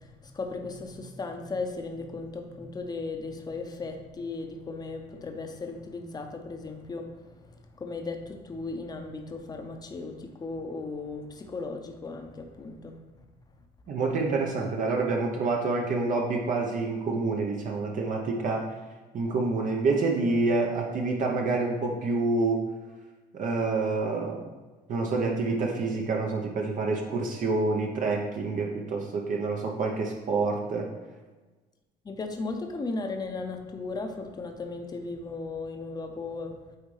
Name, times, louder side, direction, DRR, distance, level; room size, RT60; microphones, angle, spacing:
voice 1, 0.0-13.0 32.0-36.6, left 3 dB, 25° left, 4 dB, 0.8 m, -36 dB
voice 2, 13.9-18.6 19.1-22.6 23.3-24.4 24.9-30.9, right 3 dB, 50° right, 0 dB, 0.9 m, -27 dB
9.0 x 3.6 x 3.3 m, 1.2 s
cardioid pair, 110°, 17 cm